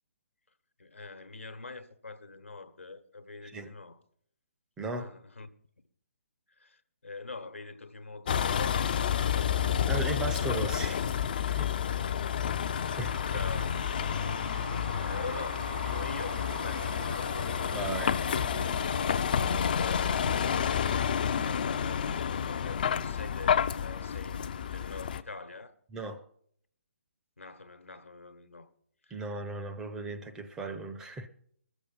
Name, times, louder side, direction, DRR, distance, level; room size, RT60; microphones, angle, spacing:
voice 1, 0.8-4.0 4.9-5.5 6.6-9.0 12.7-13.8 15.0-18.3 19.6-20.4 21.0-25.7 27.4-28.7 29.0-29.2, left 3 dB, 75° left, 1.1 m, -44 dB
voice 2, 4.8-5.1 9.9-11.8 12.4-12.5 13.0-13.2 17.7-18.1 25.9-26.3 29.1-31.3, right 3 dB, 10° right, 0.6 m, -37 dB
Vehicle, 8.3-25.2, left 8 dB, 40° left, 0.5 m, -30 dB
sound 1, 12.8-19.6, right 4 dB, 55° right, 1.0 m, -44 dB
20.5 x 7.1 x 5.5 m
figure-of-eight pair, 140°, 7 cm